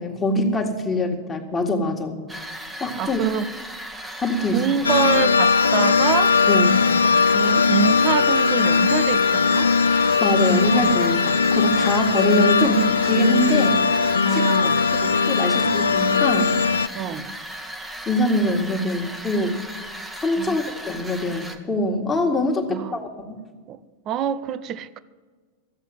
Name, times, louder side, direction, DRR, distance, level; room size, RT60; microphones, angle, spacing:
voice 1, 0.0-2.2 2.8-3.2 4.2-4.6 6.5-6.8 9.9-13.8 14.3-14.5 15.0-16.5 18.1-19.6 20.2-23.1, left 1 dB, 15° left, 2.0 m, -23 dB
sound 1, 2.3-21.6, right 1 dB, 10° right, 1.3 m, -36 dB
voice 2, 3.0-3.5 4.5-6.4 7.3-9.7 10.4-10.9 14.2-14.9 16.9-17.3 20.4-20.6 22.7-23.0 23.7-23.8 24.1-25.0, right 9 dB, 35° right, 0.6 m, -26 dB
sound 2, 4.8-16.9, left 5 dB, 75° left, 0.3 m, -19 dB
14.0 x 8.2 x 8.9 m
figure-of-eight pair, 90°, 0 cm